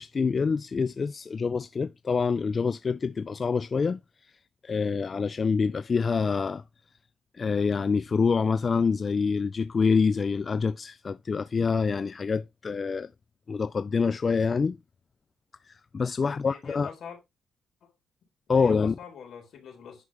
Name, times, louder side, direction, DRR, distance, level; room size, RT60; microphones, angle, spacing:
voice 1, 0.0-4.0 4.6-6.6 7.3-13.1 13.5-14.8 15.6-16.9 18.5-18.9, left 5 dB, 40° left, 0.3 m, -26 dB
voice 2, 16.2-17.2 17.8-17.9 18.2-20.0, left 7 dB, 65° left, 3.8 m, -45 dB
10.5 x 4.7 x 3.5 m
cardioid pair, 90°, 0 cm